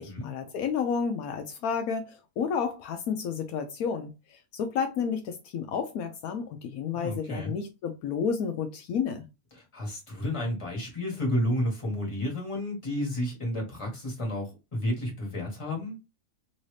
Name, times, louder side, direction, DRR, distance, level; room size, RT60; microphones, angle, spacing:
voice 1, 0.0-9.3, left 6 dB, 75° left, 1.1 m, -31 dB
voice 2, 6.9-7.5 9.7-16.0, left 1 dB, 20° left, 1.4 m, -31 dB
3.1 x 2.6 x 3.2 m
omnidirectional pair, 1.6 m